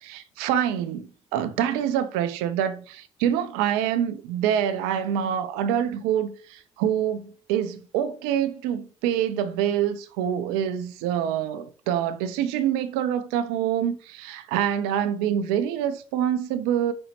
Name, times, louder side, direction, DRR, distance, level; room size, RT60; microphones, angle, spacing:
voice 1, 0.0-16.9, right 9 dB, 70° right, 0.5 m, -26 dB
5.2 x 2.7 x 2.9 m
hypercardioid pair, 50°, 17 cm